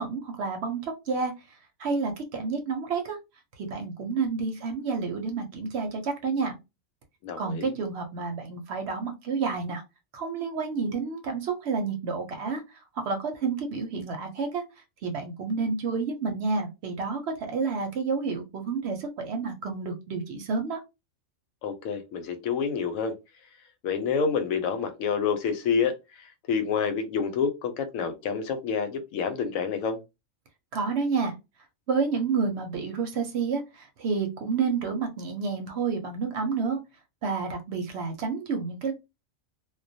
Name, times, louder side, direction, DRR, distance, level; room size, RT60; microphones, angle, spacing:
voice 1, 0.0-1.3 1.8-3.2 3.6-6.5 7.4-9.8 10.1-12.6 13.0-14.6 15.0-20.8 30.7-31.4 31.9-36.8 37.2-38.9, right 4 dB, 65° right, 0.7 m, -29 dB
voice 2, 7.2-7.7 21.6-23.1 23.8-30.0, left 6 dB, 85° left, 1.0 m, -28 dB
2.2 x 2.1 x 2.6 m
omnidirectional pair, 1.4 m